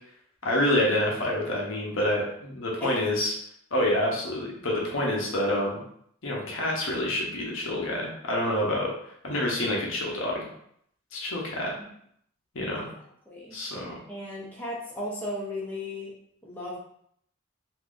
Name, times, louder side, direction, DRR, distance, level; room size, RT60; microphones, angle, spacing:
voice 1, 0.4-3.3 3.7-5.8 6.2-8.9 9.2-10.5 11.1-11.7 12.5-12.9 13.5-14.0, left 1 dB, 70° left, -2 dB, 0.8 m, -27 dB
voice 2, 13.3-13.6 14.1-16.1 16.4-16.8, left 1 dB, 10° left, -6 dB, 0.8 m, -35 dB
3.6 x 2.7 x 2.5 m, 0.68 s
head